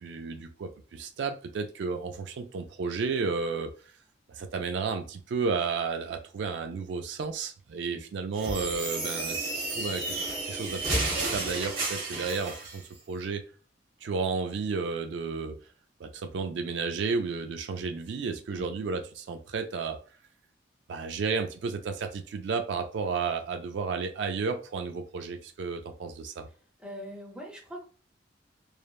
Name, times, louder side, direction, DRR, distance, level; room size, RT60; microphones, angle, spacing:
voice 1, 0.0-3.7 4.3-10.2 10.4-12.8 13.1-13.4 14.0-15.6 16.0-20.0 20.9-26.5, right 4 dB, 70° right, 6 dB, 0.3 m, -32 dB
sound 1, 8.4-12.8, right 2 dB, 50° right, 1.1 m, -32 dB
voice 2, 18.5-18.8 26.8-27.8, equal, 5° right, -1 dB, 0.7 m, -42 dB
3.2 x 2.0 x 2.3 m, 0.39 s
head